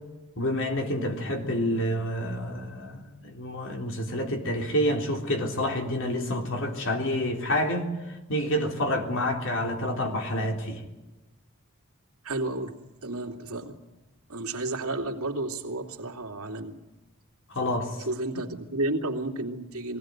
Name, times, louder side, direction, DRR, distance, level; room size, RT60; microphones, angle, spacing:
voice 1, 0.4-7.9 8.3-10.8 17.5-18.0, left 1 dB, 60° left, 3 dB, 3.7 m, -28 dB
voice 2, 12.2-13.8 14.3-16.7 18.0-20.0, right 2 dB, 90° right, 3 dB, 2.7 m, -32 dB
22.5 x 17.5 x 9.4 m, 1.1 s
head